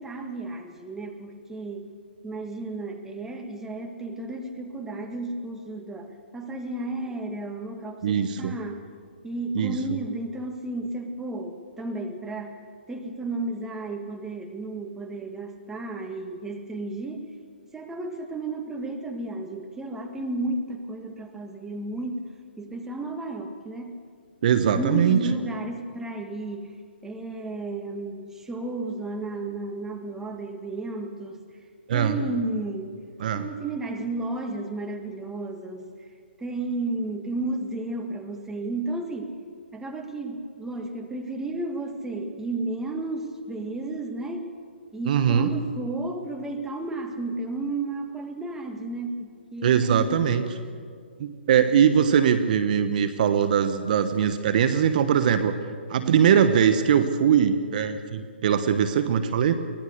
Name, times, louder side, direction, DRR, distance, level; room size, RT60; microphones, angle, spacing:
voice 1, 0.0-1.9 2.2-8.9 9.2-12.6 12.9-17.3 17.7-22.3 22.6-24.0 24.7-31.4 31.9-32.9 33.3-36.1 36.4-39.4 39.7-44.5 44.9-50.9, right 2 dB, 5° right, 4 dB, 1.7 m, -33 dB
voice 2, 8.0-8.6 9.5-9.8 24.4-25.2 31.9-32.2 33.2-33.4 45.1-45.5 49.6-50.4 51.2-55.5 55.9-59.5, right 8 dB, 45° right, 10 dB, 1.2 m, -21 dB
24.0 x 18.0 x 6.6 m, 2.1 s
hypercardioid pair, 140°, 6 cm